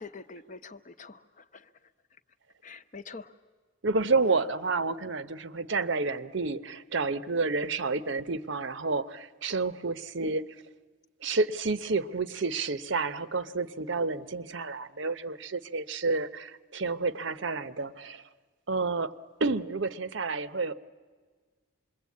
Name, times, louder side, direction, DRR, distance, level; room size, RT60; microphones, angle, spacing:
voice 1, 0.0-1.7 2.6-3.4, left 4 dB, 40° left, 9 dB, 0.8 m, -45 dB
voice 2, 3.8-10.5 11.2-18.3 18.7-19.1 19.4-20.7, right 3 dB, 60° right, 13 dB, 0.8 m, -30 dB
27.0 x 22.0 x 8.4 m, 1.5 s
head